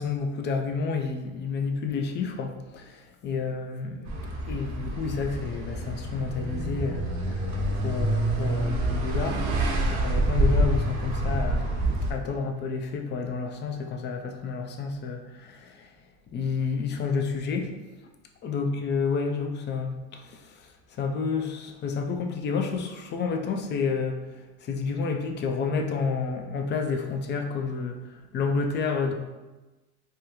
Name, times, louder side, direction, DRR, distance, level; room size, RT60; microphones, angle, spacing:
voice 1, 0.0-4.1 4.5-9.6 9.9-11.7 12.1-15.9 16.3-17.8 18.4-20.7 21.0-24.2 24.6-29.1, left 5 dB, 30° left, 4 dB, 0.4 m, -30 dB
sound 1, 4.0-12.1, right 1 dB, 50° right, 0.8 m, -27 dB
3.6 x 2.2 x 2.9 m, 1.1 s
supercardioid pair, 90°, 37 cm